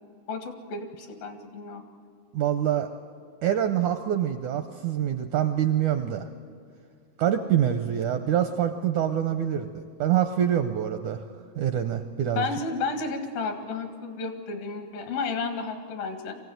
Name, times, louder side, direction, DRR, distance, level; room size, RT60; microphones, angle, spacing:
voice 1, 0.3-1.9 12.4-16.3, left 4 dB, 75° left, 5 dB, 3.6 m, -32 dB
voice 2, 2.3-2.9 3.4-6.3 7.2-11.2 11.6-12.5, right 10 dB, 80° right, 7 dB, 1.8 m, -25 dB
23.5 x 16.0 x 9.3 m, 2.3 s
omnidirectional pair, 4.3 m